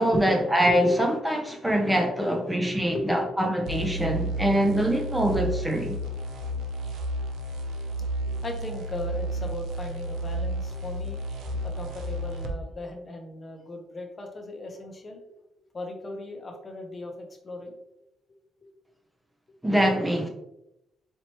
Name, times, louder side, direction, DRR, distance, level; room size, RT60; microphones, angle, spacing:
voice 1, 0.0-6.0 19.6-20.3, right 1 dB, 10° right, 0.6 m, -24 dB
voice 2, 2.6-3.3 3.9-4.0 4.3-4.7 8.3-11.2 11.5-15.2 15.7-17.7, left 2 dB, 35° left, 0.8 m, -37 dB
sound 1, 3.6-12.6, right 1 dB, 75° right, 0.6 m, -32 dB
4.4 x 2.9 x 2.9 m
cardioid pair, 90°, 0 cm